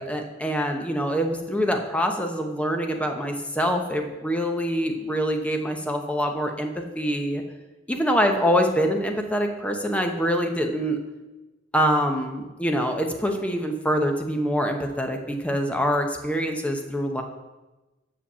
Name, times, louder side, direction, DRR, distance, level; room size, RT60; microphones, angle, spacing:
voice 1, 0.0-7.4 7.9-11.0 11.7-17.2, equal, 5° left, 3 dB, 0.8 m, -25 dB
7.1 x 5.1 x 6.8 m, 1.1 s
head